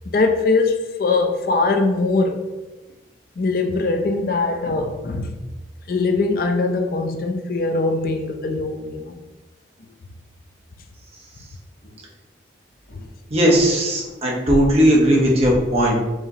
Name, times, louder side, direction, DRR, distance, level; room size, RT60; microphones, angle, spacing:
voice 1, 0.1-2.4 3.4-5.4 5.9-9.2 12.9-13.1 14.0-14.1, left 3 dB, 50° left, 5 dB, 0.4 m, -21 dB
voice 2, 13.3-16.0, equal, 35° right, -2 dB, 0.8 m, -17 dB
4.8 x 2.8 x 2.7 m, 1.1 s
head